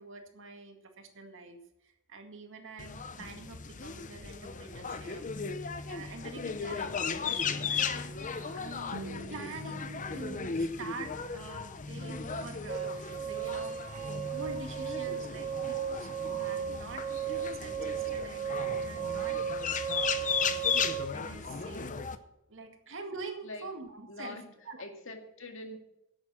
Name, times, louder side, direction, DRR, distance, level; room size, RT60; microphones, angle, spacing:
voice 1, 0.0-5.6 5.9-9.0 9.3-13.8 14.3-17.0 17.3-22.0 22.5-24.4 24.7-24.8, right 3 dB, 65° right, 5 dB, 2.0 m, -46 dB
sound 1, 2.8-22.2, left 6 dB, 40° left, 0.8 m, -36 dB
sound 2, 8.9-13.9, right 2 dB, 90° right, 1.9 m, -50 dB
sound 3, 12.7-21.1, right 9 dB, 35° right, 1.0 m, -35 dB
voice 2, 24.1-24.5 24.8-25.8, left 2 dB, 65° left, 4 dB, 2.0 m, -43 dB
11.0 x 8.1 x 7.4 m, 0.85 s
head